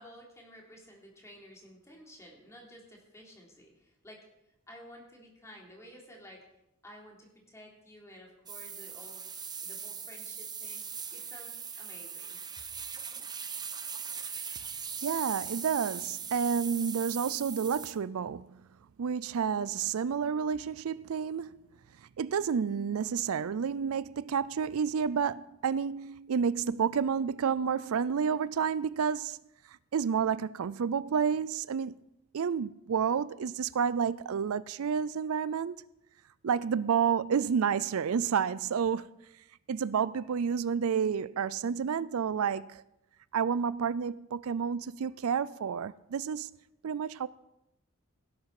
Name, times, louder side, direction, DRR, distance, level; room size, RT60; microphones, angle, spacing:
voice 1, 0.0-4.2 4.7-6.4 6.8-9.3 9.6-12.4, equal, 15° left, 3.4 m, -53 dB
sound 1, 8.5-17.9, right 6 dB, 20° right, 0.9 m, -40 dB
voice 2, 15.0-18.6 19.0-21.6 22.2-29.4 29.9-31.9 32.3-35.8 36.4-39.1 39.7-42.8 43.3-46.5 46.8-47.3, right 7 dB, 70° right, 0.4 m, -30 dB
17.5 x 10.5 x 4.8 m
head